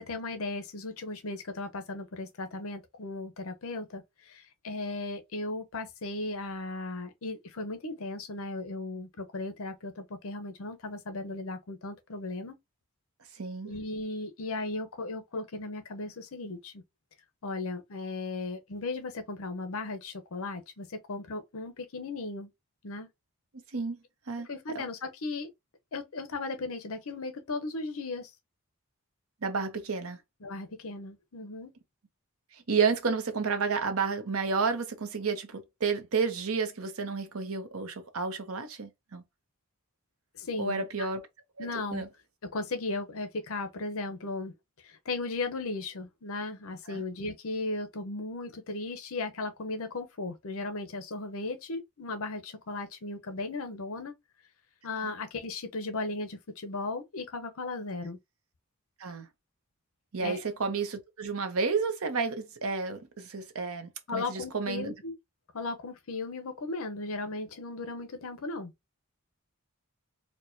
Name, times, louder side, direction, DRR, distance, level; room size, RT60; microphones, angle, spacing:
voice 1, 0.0-12.6 13.6-16.8 17.4-22.5 22.8-23.1 24.4-25.5 25.9-28.3 30.4-31.7 40.3-41.1 41.6-42.0 42.5-44.5 44.8-54.1 54.8-58.2 60.2-60.4 64.1-65.1 65.5-68.7, left 3 dB, 75° left, 0.7 m, -36 dB
voice 2, 13.4-13.7 23.7-24.0 24.3-24.5 29.4-30.2 32.7-39.2 40.6-41.3 41.6-41.7 41.9-42.1 46.9-47.0 59.0-59.3 60.1-64.9, right 5 dB, 75° right, 0.8 m, -31 dB
4.4 x 2.2 x 2.6 m
head